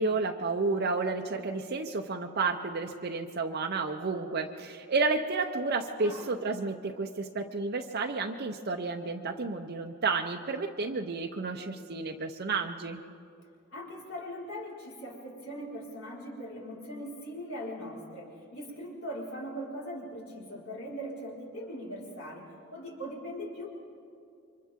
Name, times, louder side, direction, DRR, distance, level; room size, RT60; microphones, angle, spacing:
voice 1, 0.0-13.0, right 3 dB, 50° right, 3 dB, 0.7 m, -31 dB
voice 2, 6.0-6.4 13.7-23.7, equal, 85° left, -4 dB, 4.8 m, -40 dB
29.5 x 25.0 x 3.7 m, 2.5 s
head